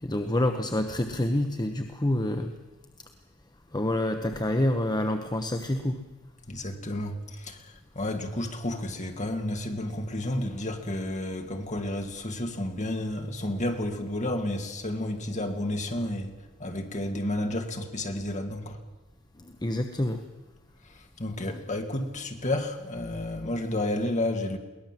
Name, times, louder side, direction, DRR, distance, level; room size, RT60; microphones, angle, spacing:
voice 1, 0.0-2.5 3.7-6.0 19.4-20.2 21.5-21.6, left 1 dB, 20° left, 1.0 m, -27 dB
voice 2, 6.5-16.3 16.6-18.8 20.8-24.6, left 1 dB, 35° left, 2.3 m, -31 dB
22.5 x 18.5 x 7.6 m
head